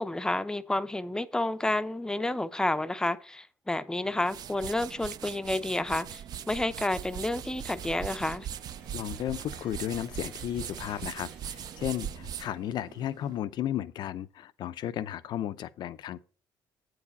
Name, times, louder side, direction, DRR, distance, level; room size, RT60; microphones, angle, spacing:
voice 1, 0.0-8.5, left 2 dB, 10° left, 0.5 m, -30 dB
sound 1, 4.0-13.4, right 9 dB, 50° right, 0.4 m, -41 dB
sound 2, 6.9-13.0, right 5 dB, 90° right, 2.3 m, -51 dB
voice 2, 8.9-16.2, left 11 dB, 60° left, 0.5 m, -34 dB
7.9 x 4.8 x 5.3 m
cardioid pair, 115°, 8 cm